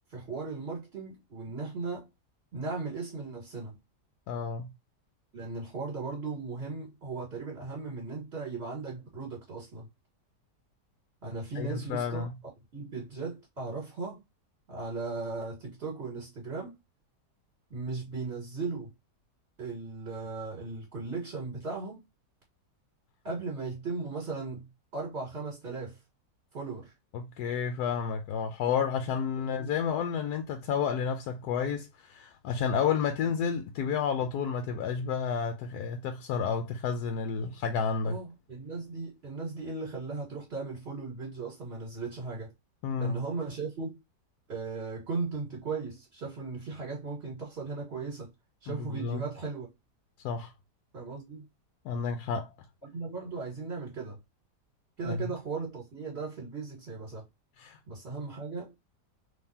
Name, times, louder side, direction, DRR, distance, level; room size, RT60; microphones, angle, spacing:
voice 1, 0.1-2.1 2.5-3.8 5.3-9.9 11.2-12.3 12.7-14.2 14.7-16.8 17.7-18.9 19.6-22.0 23.2-24.7 24.9-26.0 26.5-26.9 29.4-29.7 33.4-33.5 38.0-42.5 43.0-43.9 44.5-48.3 48.6-49.7 50.9-51.4 52.9-54.2 55.0-57.2 57.9-58.8, right 4 dB, 40° right, 1.9 m, -37 dB
voice 2, 4.3-4.7 11.6-12.3 27.1-38.2 42.8-43.2 48.7-49.2 50.2-50.5 51.8-52.5 55.0-55.3 57.6-57.8, left 6 dB, 75° left, 1.1 m, -31 dB
3.8 x 3.1 x 2.7 m
omnidirectional pair, 1.8 m